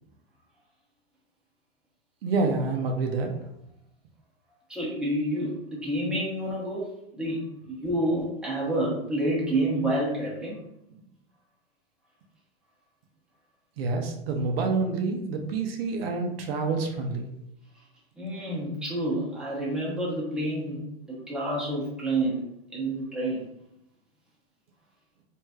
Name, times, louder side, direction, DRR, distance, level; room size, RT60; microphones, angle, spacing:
voice 1, 2.2-3.3 13.8-17.3, right 3 dB, 65° right, 3 dB, 0.6 m, -27 dB
voice 2, 4.7-7.4 7.7-10.6 18.2-22.4 22.7-23.4, right 1 dB, ahead, -6 dB, 0.8 m, -29 dB
3.1 x 2.6 x 2.2 m, 0.79 s
hypercardioid pair, 120°, 31 cm